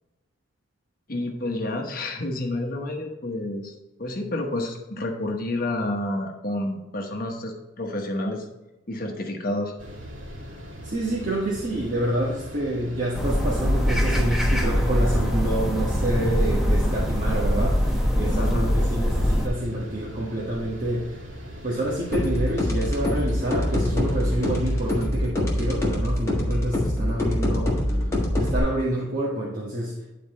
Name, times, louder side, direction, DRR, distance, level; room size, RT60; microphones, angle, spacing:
voice 1, 1.1-3.7 4.0-8.5 8.9-9.7 18.2-18.7, left 1 dB, 45° left, 2 dB, 1.0 m, -29 dB
sound 1, 9.8-25.1, equal, 75° right, 2.4 m, -40 dB
voice 2, 10.8-21.2 21.6-28.0 28.4-29.9, right 1 dB, 45° right, -5 dB, 1.4 m, -28 dB
sound 2, 13.1-19.5, equal, ahead, 0.9 m, -23 dB
sound 3, 22.1-28.6, left 1 dB, 15° left, 1.6 m, -25 dB
10.0 x 4.3 x 4.2 m, 1.0 s
head